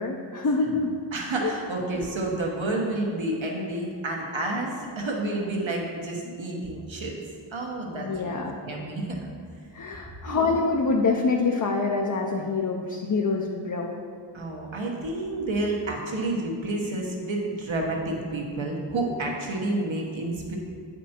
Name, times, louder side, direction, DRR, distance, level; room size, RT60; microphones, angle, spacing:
voice 1, 0.0-1.0 1.4-1.5 8.0-8.6 9.7-14.0, left 4 dB, 40° left, 1 dB, 0.6 m, -26 dB
voice 2, 1.1-7.2 7.5-8.4 8.6-9.2 10.3-10.8 14.3-20.6, right 2 dB, 70° right, -1 dB, 1.3 m, -30 dB
8.8 x 5.2 x 4.4 m, 2.2 s
wide cardioid pair, 90°, 48 cm